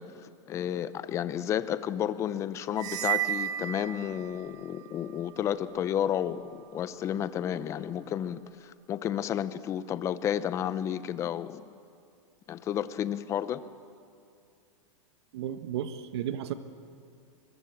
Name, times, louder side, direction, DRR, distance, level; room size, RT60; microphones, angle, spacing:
voice 1, 0.0-11.6 12.5-13.6, left 10 dB, 20° left, 14 dB, 0.7 m, -32 dB
sound 1, 2.8-4.6, right 12 dB, 25° right, 0.7 m, -32 dB
voice 2, 15.3-16.5, right 10 dB, 55° right, 10 dB, 1.4 m, -33 dB
25.0 x 22.5 x 8.8 m, 2.4 s
supercardioid pair, 165°, 16 cm